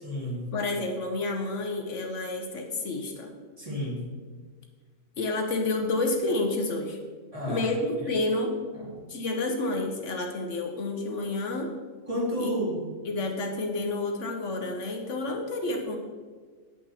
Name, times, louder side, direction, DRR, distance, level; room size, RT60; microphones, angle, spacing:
voice 1, 0.0-0.5 3.6-4.1 7.3-7.7 8.0-8.1 8.7-9.0 12.1-12.9, equal, 25° right, -5 dB, 2.5 m, -31 dB
voice 2, 0.5-3.3 5.2-7.0 7.5-8.6 9.1-11.7 12.4-12.5 13.0-16.0, left 2 dB, 70° left, 3 dB, 1.3 m, -29 dB
8.5 x 8.3 x 4.2 m, 1.5 s
omnidirectional pair, 1.3 m